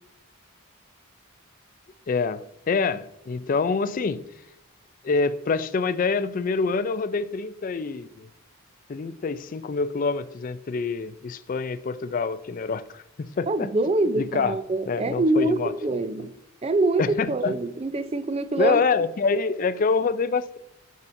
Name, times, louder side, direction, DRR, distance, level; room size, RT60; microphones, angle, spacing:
voice 1, 2.1-4.2 5.0-8.3 8.9-13.7 14.2-14.6 14.8-15.7 17.0-17.6 18.6-20.6, left 4 dB, 40° left, 0.3 m, -26 dB
voice 2, 13.5-16.3 16.6-18.8, right 2 dB, 30° right, 0.4 m, -24 dB
9.7 x 6.0 x 2.6 m
head